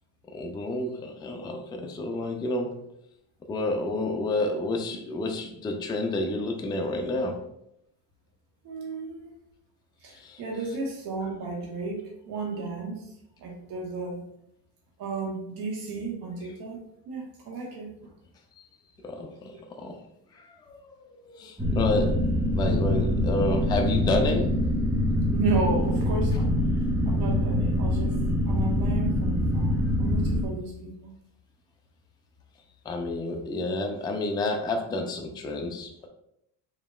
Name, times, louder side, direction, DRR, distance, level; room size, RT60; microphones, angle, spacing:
voice 1, 0.3-2.8 3.5-7.4 10.1-10.4 19.0-19.5 19.8-20.0 20.4-22.3 22.5-24.5 32.9-36.1, left 2 dB, 10° left, 3 dB, 0.3 m, -30 dB
voice 2, 8.6-9.3 10.0-13.1 13.4-14.2 15.0-16.8 17.1-18.1 25.3-26.5 27.1-28.2 28.5-31.1, right 4 dB, 85° right, -2 dB, 1.4 m, -33 dB
sound 1, 21.6-30.5, left 1 dB, 5° right, 0.7 m, -24 dB
5.1 x 2.8 x 2.3 m, 0.77 s
cardioid pair, 115°, 39 cm